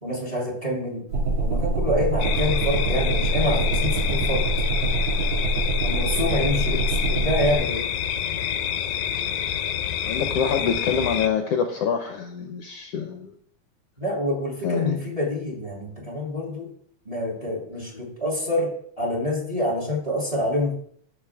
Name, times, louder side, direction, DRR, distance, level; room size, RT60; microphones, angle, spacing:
voice 1, 0.0-1.0 1.4-4.4 5.8-7.8 14.0-16.7 17.0-20.8, left 1 dB, 10° right, -2 dB, 2.6 m, -27 dB
sound 1, 1.1-7.6, right 2 dB, 80° right, 3.7 m, -24 dB
sound 2, 2.2-11.3, left 9 dB, 85° left, 2.0 m, -28 dB
voice 2, 6.3-6.8 10.1-13.3 14.6-15.0, left 7 dB, 65° left, 4 dB, 1.6 m, -26 dB
11.0 x 7.3 x 3.6 m, 0.62 s
omnidirectional pair, 3.4 m